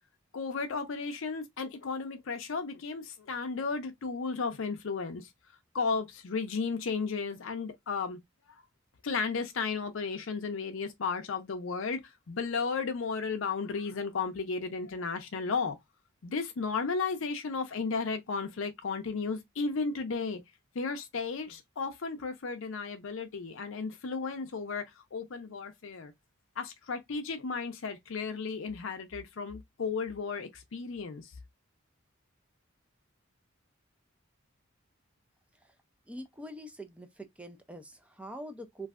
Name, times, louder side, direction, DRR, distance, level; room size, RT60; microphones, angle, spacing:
voice 1, 0.3-5.3 5.7-8.2 8.5-8.6 9.0-15.8 16.2-20.4 20.7-24.8 25.1-26.1 26.6-31.3, left 4 dB, 65° left, 0.5 m, -34 dB
voice 2, 36.1-38.9, right 1 dB, 5° right, 0.4 m, -44 dB
3.1 x 2.6 x 2.4 m
head